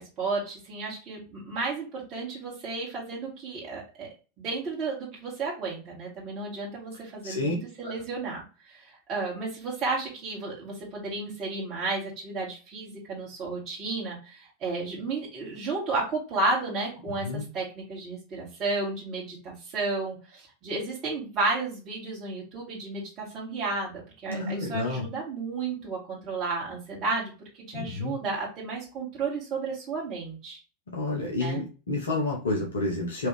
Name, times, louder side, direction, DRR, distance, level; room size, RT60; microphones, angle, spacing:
voice 1, 0.0-4.1 4.4-8.4 8.7-8.8 9.1-27.3 27.7-30.6 31.4-31.6, right 3 dB, 35° right, -5 dB, 2.0 m, -32 dB
voice 2, 7.2-7.5 7.8-7.9 17.2-17.5 24.3-25.0 27.8-28.2 30.9-33.3, left 2 dB, 75° left, -1 dB, 1.1 m, -30 dB
4.6 x 3.1 x 3.4 m, 0.33 s
figure-of-eight pair, 85°, 0 cm